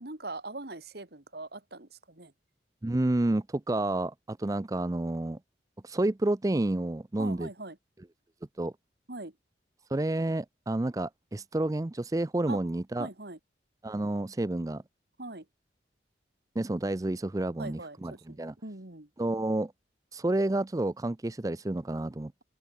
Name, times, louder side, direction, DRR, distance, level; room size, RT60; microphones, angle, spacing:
voice 1, 0.0-2.3 7.2-7.8 9.1-9.3 12.5-12.6 13.0-13.4 15.2-15.4 17.6-19.1, right 2 dB, 55° right, 2.1 m, -41 dB
voice 2, 2.8-5.4 5.8-7.5 8.6-8.7 9.9-13.1 13.8-14.8 16.6-18.5 19.2-19.7 20.1-22.4, right 1 dB, 20° right, 0.4 m, -30 dB
head